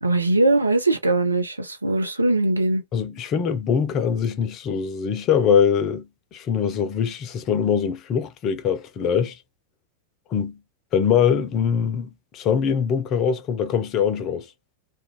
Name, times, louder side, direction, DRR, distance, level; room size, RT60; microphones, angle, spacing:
voice 1, 0.0-2.8, right 2 dB, 80° right, 0.5 m, -21 dB
voice 2, 2.9-9.4 10.3-10.6 10.9-14.5, left 7 dB, 35° left, 0.5 m, -23 dB
2.4 x 2.1 x 2.8 m
figure-of-eight pair, 90°, 0 cm